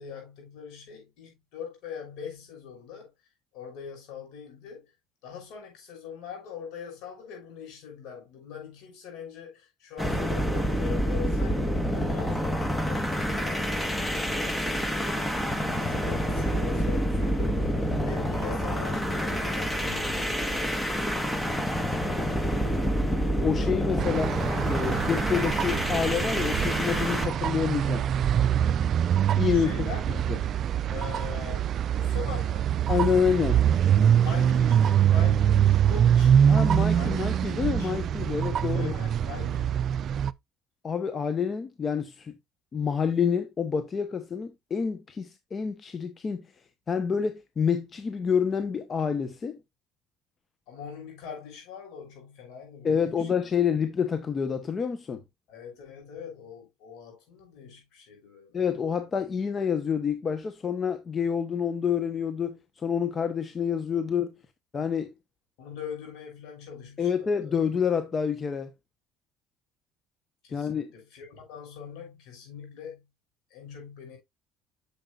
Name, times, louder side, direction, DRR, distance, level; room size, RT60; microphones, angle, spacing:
voice 1, 0.0-3.1 3.5-4.9 5.2-20.9 29.5-30.3 30.9-32.8 34.2-36.4 36.9-37.9 38.7-39.9 50.7-53.3 55.5-58.6 65.6-67.6 70.4-73.1 73.5-74.2, left 7 dB, 70° left, 5.9 m, -43 dB
sound 1, 10.0-27.3, equal, 10° left, 1.4 m, -28 dB
voice 2, 23.4-24.3 24.7-28.0 29.4-29.9 30.3-30.4 32.9-33.6 36.5-39.0 40.8-42.4 42.7-46.5 46.9-49.6 52.8-55.2 58.5-64.3 64.7-65.1 67.0-68.7 70.5-70.9, left 7 dB, 35° left, 1.0 m, -28 dB
sound 2, 24.0-40.3, right 9 dB, 50° right, 0.4 m, -24 dB
8.9 x 7.0 x 2.5 m
supercardioid pair, 80°, 0 cm